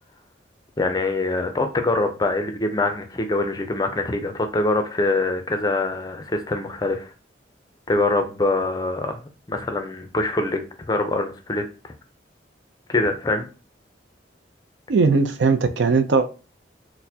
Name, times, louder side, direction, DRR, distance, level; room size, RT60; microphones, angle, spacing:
voice 1, 0.8-7.1 7.9-9.1 9.5-11.6 12.9-13.5, left 2 dB, 20° left, 0.4 m, -24 dB
voice 2, 14.9-16.3, right 4 dB, 75° right, 0.4 m, -19 dB
4.2 x 2.0 x 2.7 m
head